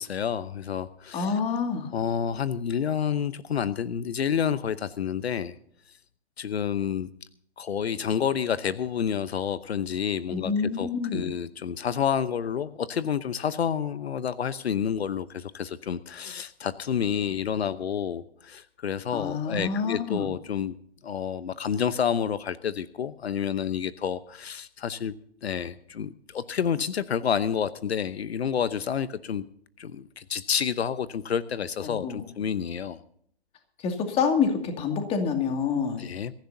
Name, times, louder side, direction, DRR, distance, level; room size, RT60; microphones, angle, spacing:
voice 1, 0.0-1.4 1.9-5.6 6.4-7.1 7.6-20.7 21.0-25.1 25.4-29.4 29.8-33.0 36.0-36.3, left 8 dB, 70° left, 14 dB, 0.9 m, -29 dB
voice 2, 1.1-1.9 10.3-11.2 19.1-20.3 31.8-32.2 33.8-36.0, left 5 dB, 20° left, 5 dB, 2.4 m, -27 dB
22.5 x 14.5 x 2.7 m, 0.65 s
hypercardioid pair, 140°, 32 cm